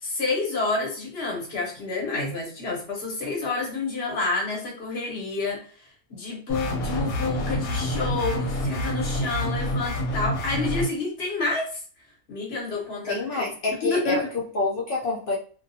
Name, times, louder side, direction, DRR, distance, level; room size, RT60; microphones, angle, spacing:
voice 1, 0.0-11.8 12.3-13.5 13.8-14.3, left 3 dB, 50° left, -1 dB, 1.0 m, -29 dB
sound 1, 6.5-10.9, left 1 dB, 90° left, 1.0 m, -27 dB
voice 2, 13.0-15.4, left 3 dB, 65° left, -2 dB, 0.5 m, -27 dB
2.4 x 2.2 x 2.6 m, 0.41 s
omnidirectional pair, 1.5 m